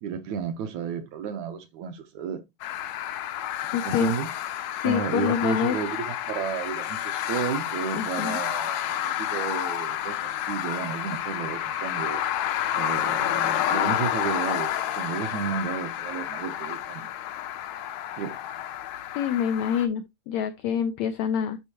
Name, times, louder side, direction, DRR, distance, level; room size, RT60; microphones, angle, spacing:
voice 1, 0.0-2.4 3.8-4.3 4.8-12.2 12.8-17.1 18.2-18.4, right 8 dB, 70° right, 2.0 m, -32 dB
sound 1, 2.6-19.9, left 11 dB, 75° left, 1.9 m, -30 dB
voice 2, 3.7-4.1 4.7-5.8 7.9-8.4 19.2-21.6, left 8 dB, 90° left, 1.5 m, -26 dB
11.5 x 4.3 x 2.9 m
omnidirectional pair, 3.8 m